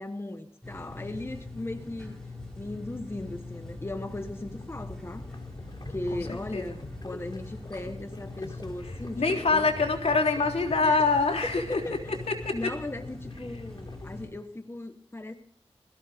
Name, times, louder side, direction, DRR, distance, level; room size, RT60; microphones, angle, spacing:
voice 1, 0.0-2.2 2.6-5.3 5.9-6.8 7.0-9.7 10.8-11.1 11.7-12.3 12.5-15.3, left 1 dB, 25° left, 7 dB, 1.3 m, -37 dB
sound 1, 0.6-14.3, left 2 dB, 5° left, 7.1 m, -42 dB
sound 2, 3.4-14.1, left 2 dB, 45° left, 3.1 m, -47 dB
voice 2, 6.1-6.6 8.8-11.8 12.3-12.5, left 4 dB, 75° left, 1 dB, 3.5 m, -25 dB
21.0 x 16.0 x 3.6 m, 0.66 s
wide cardioid pair, 90°, 11 cm